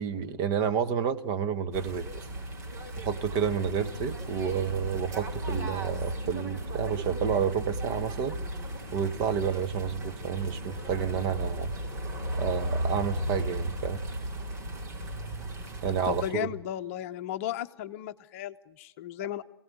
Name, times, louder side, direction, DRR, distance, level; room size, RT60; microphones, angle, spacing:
voice 1, 0.0-2.2 3.0-8.4 8.9-11.7 12.4-14.0 15.8-16.5, right 7 dB, 30° right, 10 dB, 1.2 m, -30 dB
sound 1, 1.7-16.3, right 1 dB, 50° right, 5.1 m, -35 dB
voice 2, 16.0-19.4, left 12 dB, 35° left, 10 dB, 0.8 m, -35 dB
26.0 x 17.5 x 9.5 m, 1.0 s
figure-of-eight pair, 120°, 12 cm